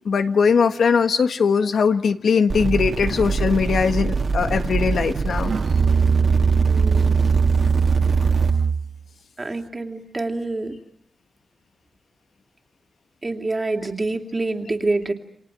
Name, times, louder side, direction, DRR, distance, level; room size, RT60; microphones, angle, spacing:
voice 1, 0.0-5.5 8.2-8.3, left 5 dB, 80° left, 8 dB, 1.6 m, -20 dB
sound 1, 2.5-8.5, right 4 dB, 45° right, 2.2 m, -24 dB
Musical instrument, 5.4-9.0, right 6 dB, 75° right, 1.2 m, -20 dB
voice 2, 6.7-7.2 9.4-10.7 13.2-15.1, right 2 dB, 25° right, 4 dB, 2.7 m, -26 dB
29.0 x 27.0 x 7.6 m, 0.67 s
wide cardioid pair, 150°, 0 cm